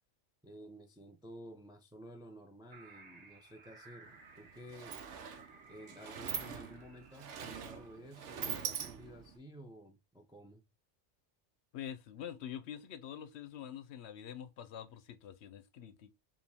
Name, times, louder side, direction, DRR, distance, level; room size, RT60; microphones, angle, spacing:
voice 1, 0.4-5.0 5.7-10.6, equal, 5° right, 0.4 m, -53 dB
sound 1, 2.7-8.0, right 3 dB, 35° right, 1.0 m, -58 dB
Sliding door, 4.0-4.2 4.4-9.4, right 8 dB, 85° right, 1.0 m, -43 dB
voice 2, 11.7-16.1, left 9 dB, 70° left, 0.8 m, -46 dB
4.9 x 2.7 x 3.4 m
omnidirectional pair, 1.2 m